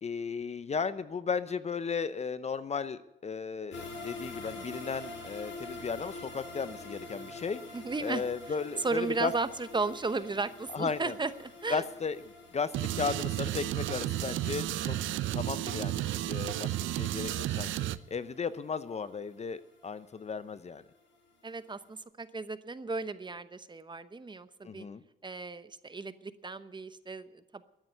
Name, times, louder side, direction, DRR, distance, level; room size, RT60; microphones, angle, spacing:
voice 1, 0.0-7.6 8.0-9.3 10.7-11.1 11.7-12.2 12.5-15.0 15.3-17.7 18.1-20.8 24.6-25.0, left 5 dB, 35° left, 14 dB, 0.7 m, -35 dB
sound 1, 3.7-20.8 21.1-21.2 21.6-21.7, left 2 dB, 70° left, 6.8 m, -47 dB
voice 2, 7.7-8.2 8.5-11.8 16.8-17.3 21.4-24.9 25.2-27.6, right 3 dB, 25° right, 12 dB, 0.9 m, -35 dB
sound 2, 12.7-18.0, right 13 dB, 75° right, 0.6 m, -32 dB
13.5 x 9.6 x 9.4 m, 0.87 s
cardioid pair, 90°, 20 cm